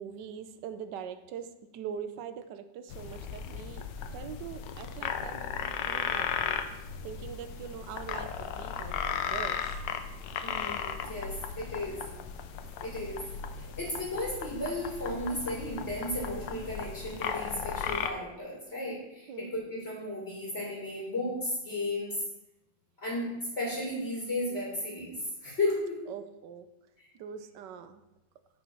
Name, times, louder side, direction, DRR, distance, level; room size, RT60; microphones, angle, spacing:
voice 1, 0.0-1.5 1.7-3.8 4.1-6.6 7.0-9.7 13.6-13.7 19.3-19.5 26.1-26.7 27.2-28.0, right 8 dB, 75° right, 10 dB, 1.2 m, -42 dB
sound 1, 2.9-18.1, left 7 dB, 75° left, 1.3 m, -36 dB
voice 2, 10.4-12.0 12.8-13.2 13.6-22.2 23.0-26.0 27.0-27.1, left 1 dB, 35° left, -5 dB, 2.6 m, -34 dB
9.1 x 4.4 x 5.3 m, 0.94 s
omnidirectional pair, 2.0 m